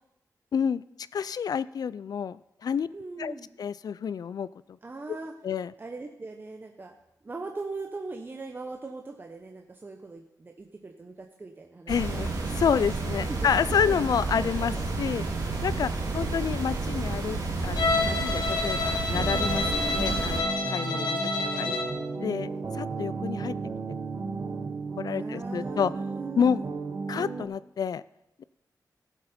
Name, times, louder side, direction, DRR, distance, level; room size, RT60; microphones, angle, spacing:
voice 1, 0.5-0.8 1.1-2.9 3.2-3.3 3.6-4.5 5.4-5.7 11.9-12.3 12.6-15.2 15.6-17.4 17.6-21.2 21.6-21.8 22.2-22.5 22.7-23.5 25.0-25.9 26.4-26.6 27.1-28.0, left 7 dB, 70° left, 18 dB, 0.3 m, -29 dB
voice 2, 2.9-3.5 4.8-5.3 5.8-6.9 7.2-12.2 12.8-13.0 13.2-14.0 14.3-15.2 19.8-20.1 20.9-21.2 25.1-26.6, right 3 dB, 30° right, 3 dB, 0.8 m, -41 dB
sound 1, 11.9-20.4, right 3 dB, 85° right, 2.5 m, -30 dB
Bowed string instrument, 17.8-22.0, left 3 dB, 85° left, 1.6 m, -29 dB
sound 2, 19.1-27.4, right 4 dB, 50° right, 1.2 m, -34 dB
16.0 x 8.0 x 4.3 m, 0.85 s
wide cardioid pair, 140°, 7 cm